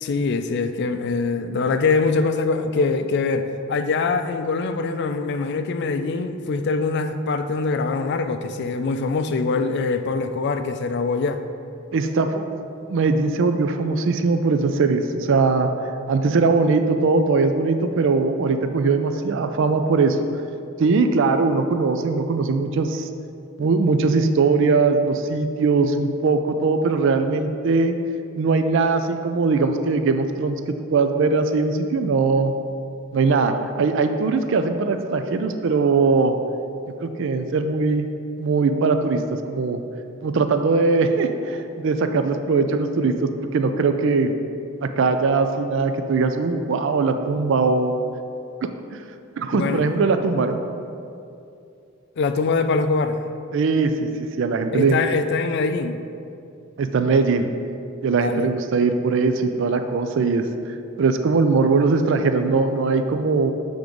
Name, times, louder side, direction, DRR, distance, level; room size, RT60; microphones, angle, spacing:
voice 1, 0.0-11.4 49.5-49.9 52.2-53.2 54.7-56.0 58.1-58.5, left 4 dB, 55° left, 9 dB, 0.4 m, -23 dB
voice 2, 11.9-15.7 16.1-20.2 20.8-23.1 23.6-28.0 28.4-30.6 30.9-32.5 33.1-36.3 37.0-38.1 38.4-39.8 40.2-44.3 44.8-48.0 48.9-49.0 49.4-50.6 53.5-55.0 56.8-57.5 58.0-63.5, right 4 dB, 65° right, 7 dB, 0.4 m, -20 dB
7.6 x 3.6 x 5.1 m, 2.6 s
head